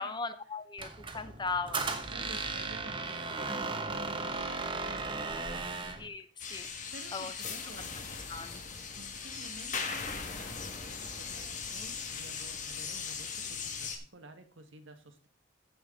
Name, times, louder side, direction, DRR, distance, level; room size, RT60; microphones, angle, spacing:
voice 1, 0.0-2.0 6.0-6.7 7.1-7.3 8.3-8.6, left 4 dB, 25° left, 11 dB, 0.7 m, -38 dB
Squeak, 0.8-6.1, right 3 dB, 25° right, 1.0 m, -36 dB
voice 2, 2.1-6.1 6.9-7.9 9.0-15.3, right 2 dB, 85° right, 7 dB, 1.5 m, -52 dB
sound 1, 6.4-14.0, left 5 dB, 40° left, 1.5 m, -39 dB
14.5 x 5.7 x 3.7 m, 0.37 s
head